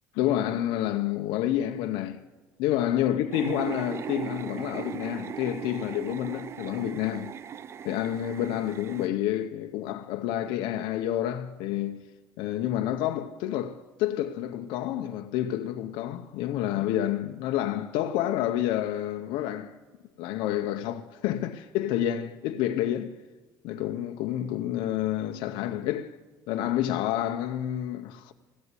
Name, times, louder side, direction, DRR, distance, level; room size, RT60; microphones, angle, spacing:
voice 1, 0.1-2.2 2.6-7.3 7.8-12.0 12.4-19.7 20.2-23.1 23.6-26.1 26.5-28.3, left 12 dB, 80° left, 0.8 m, -29 dB
sound 1, 3.3-9.1, right 8 dB, 35° right, 0.4 m, -38 dB
15.5 x 8.2 x 9.7 m
cardioid pair, 135°, 8 cm